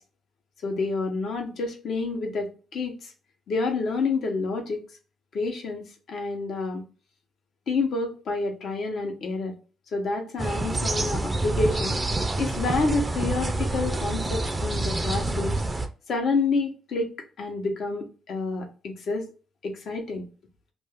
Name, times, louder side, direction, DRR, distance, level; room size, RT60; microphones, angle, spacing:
voice 1, 0.6-3.1 3.5-4.8 5.3-6.8 7.7-9.5 9.9-15.6 16.1-19.3 19.6-20.2, left 3 dB, 65° left, 3 dB, 0.9 m, -29 dB
sound 1, 10.4-15.9, right 2 dB, 20° right, 0.4 m, -27 dB
2.5 x 2.3 x 3.3 m, 0.36 s
cardioid pair, 90°, 0 cm